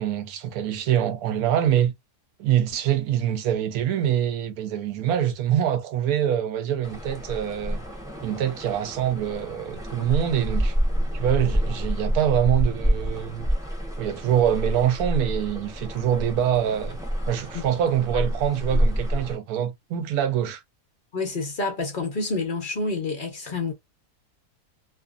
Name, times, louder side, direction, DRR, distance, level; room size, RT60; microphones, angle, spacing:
voice 1, 0.0-1.9 2.4-7.8 8.2-10.7 11.1-13.5 14.0-17.0 17.3-20.6, right 10 dB, 75° right, 1.1 m, -24 dB
sound 1, 6.8-19.4, equal, 5° right, 0.6 m, -28 dB
voice 2, 21.1-23.7, left 3 dB, 55° left, 0.5 m, -28 dB
2.5 x 2.5 x 2.3 m
omnidirectional pair, 1.6 m